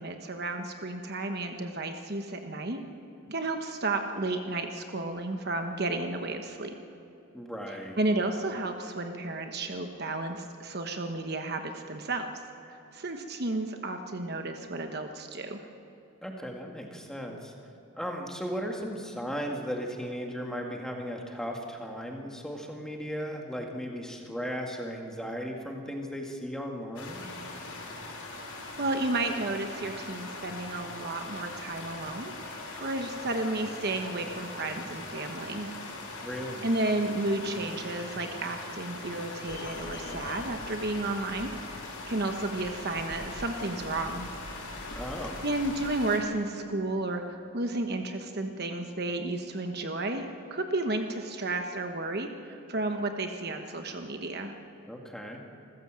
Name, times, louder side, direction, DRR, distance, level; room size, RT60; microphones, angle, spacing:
voice 1, 0.0-2.8 3.3-6.7 8.0-12.3 12.7-15.6 28.8-35.7 36.6-41.5 42.1-44.3 45.4-54.5, right 2 dB, 45° right, 5 dB, 1.2 m, -32 dB
voice 2, 7.3-8.0 16.2-17.5 17.9-27.3 36.2-36.7 45.0-45.4 54.9-55.4, equal, 5° left, 1 dB, 2.0 m, -36 dB
sound 1, 26.9-46.2, left 2 dB, 90° left, 5.9 m, -41 dB
sound 2, 39.5-45.9, left 1 dB, 50° left, 1.8 m, -45 dB
27.0 x 15.0 x 7.6 m, 2.8 s
head